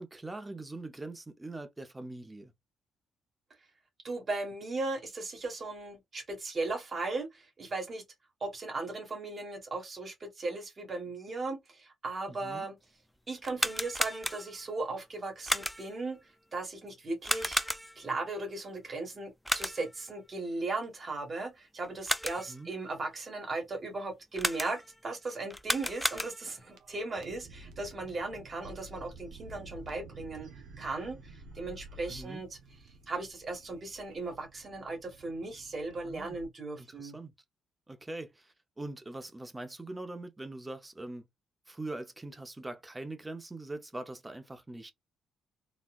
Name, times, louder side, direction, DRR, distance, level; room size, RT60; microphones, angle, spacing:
voice 1, 0.0-2.5 12.3-12.6 22.5-22.7 32.1-32.4 36.0-36.4 36.8-37.3 37.9-41.3 41.7-44.9, right 2 dB, 15° right, 0.8 m, -42 dB
voice 2, 4.0-8.0 8.4-12.8 13.3-16.2 16.5-17.6 17.9-30.5 30.8-32.5 33.1-37.2, right 3 dB, 40° right, 1.6 m, -37 dB
sound 1, 13.4-14.7 15.5-16.0 17.2-18.1 19.4-20.0 21.8-22.6 24.4-25.0 25.5-26.6, equal, 5° left, 0.4 m, -33 dB
sound 2, 26.6-36.4, right 1 dB, 80° right, 0.7 m, -51 dB
4.1 x 2.3 x 2.5 m
cardioid pair, 90°, 0 cm